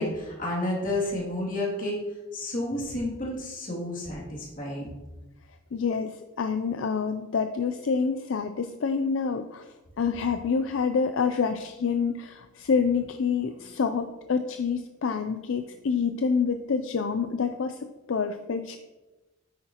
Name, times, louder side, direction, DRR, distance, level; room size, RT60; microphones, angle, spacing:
voice 1, 0.0-2.0 2.3-4.9, left 1 dB, 40° left, -4 dB, 2.6 m, -30 dB
voice 2, 5.7-9.7 10.0-17.8 18.1-18.8, left 5 dB, 65° left, 8 dB, 0.4 m, -27 dB
9.5 x 8.6 x 2.9 m, 1.1 s
head